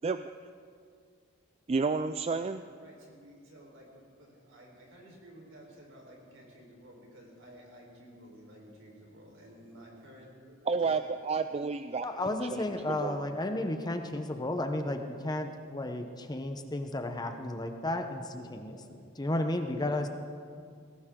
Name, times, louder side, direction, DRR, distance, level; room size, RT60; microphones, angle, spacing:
voice 1, 1.7-2.6 10.7-12.0 12.5-12.6 13.0-13.2, right 4 dB, 30° right, 10 dB, 0.3 m, -30 dB
voice 2, 2.8-11.2 18.7-18.9, equal, 70° right, -1 dB, 4.1 m, -53 dB
voice 3, 12.0-18.8 19.2-20.1, left 1 dB, 20° left, 6 dB, 0.9 m, -33 dB
20.0 x 17.0 x 3.8 m, 2.2 s
head